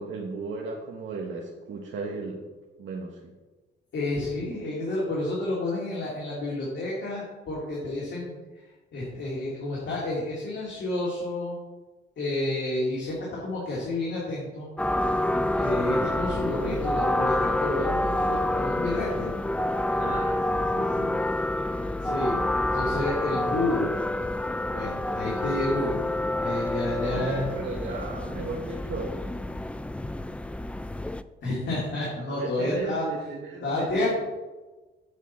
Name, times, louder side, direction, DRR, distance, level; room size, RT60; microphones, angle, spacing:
voice 1, 0.0-2.4 2.8-3.2 20.0-21.2 27.0-29.2 32.2-34.2, right 3 dB, 75° right, -1 dB, 1.2 m, -35 dB
voice 2, 3.9-8.4 8.9-11.6 12.2-14.7 15.5-19.3 22.0-23.9 24.7-26.1 26.4-27.5 31.4-33.1 33.6-34.2, left 2 dB, 65° left, -6 dB, 2.6 m, -30 dB
sound 1, 14.8-31.2, left 1 dB, 5° left, 0.3 m, -28 dB
8.1 x 4.5 x 7.1 m, 1.2 s
cardioid pair, 90°, 20 cm